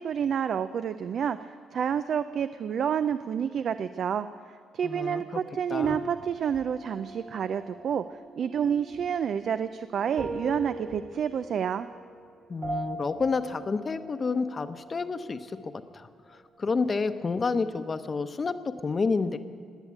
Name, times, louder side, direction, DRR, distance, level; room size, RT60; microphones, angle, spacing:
voice 1, 0.0-4.3 4.7-11.9, right 8 dB, 60° right, 12 dB, 0.4 m, -29 dB
voice 2, 4.8-5.2 5.7-6.0 12.5-16.1 16.6-18.5 18.8-19.4, left 4 dB, 35° left, 10 dB, 0.8 m, -29 dB
sound 1, 5.8-15.7 16.0-16.7, right 2 dB, 45° right, 2.9 m, -41 dB
19.5 x 8.1 x 8.5 m, 2.3 s
cardioid pair, 90°, 0 cm